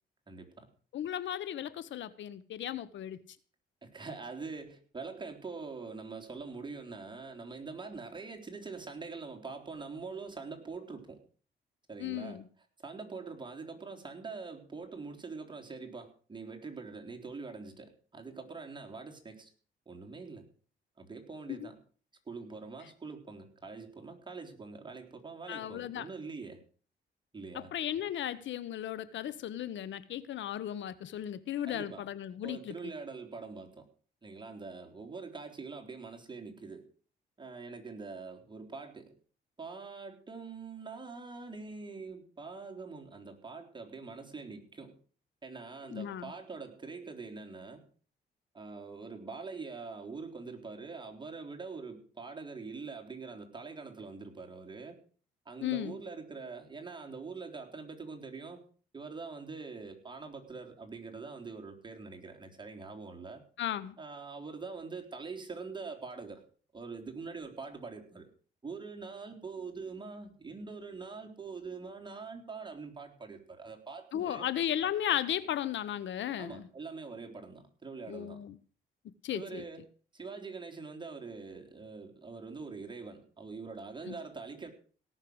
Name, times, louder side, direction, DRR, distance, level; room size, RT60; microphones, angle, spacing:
voice 1, 0.3-0.7 3.8-11.2 11.9-12.4 12.8-19.5 19.9-20.5 21.0-21.8 22.3-26.6 27.3-27.7 31.6-32.1 32.4-33.9 34.2-36.8 37.4-39.1 39.6-45.0 45.4-47.9 48.5-55.0 55.5-58.6 58.9-63.4 64.0-66.4 66.7-68.3 68.6-74.5 76.4-78.4 79.3-79.9 80.1-84.7, right 4 dB, 25° right, 3.6 m, -44 dB
voice 2, 0.9-3.2 12.0-12.4 21.5-21.7 25.5-26.1 27.5-32.8 45.9-46.3 55.6-56.0 63.6-63.9 74.1-76.7 78.1-78.6 79.2-79.6 84.1-84.2, left 11 dB, 70° left, 1.0 m, -35 dB
17.5 x 6.6 x 7.9 m
cardioid pair, 90°, 20 cm